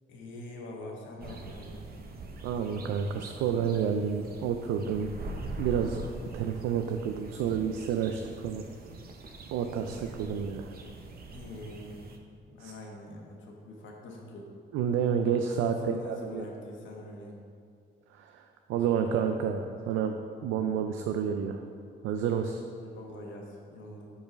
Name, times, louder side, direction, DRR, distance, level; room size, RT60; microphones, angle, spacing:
voice 1, 0.1-1.9 11.3-12.0 12.4-14.5 15.5-17.4 22.7-24.1, left 2 dB, 75° left, 0 dB, 1.3 m, -44 dB
sound 1, 1.2-12.2, right 2 dB, 50° right, 0.7 m, -43 dB
voice 2, 2.4-5.1 5.6-6.0 6.3-8.6 9.5-10.7 12.6-12.7 14.7-15.7 16.1-16.4 18.2-18.4 18.7-20.1 20.4-21.6 22.0-22.6, right 7 dB, 90° right, 5 dB, 0.4 m, -29 dB
5.4 x 4.7 x 5.1 m, 2.3 s
cardioid pair, 90°, 20 cm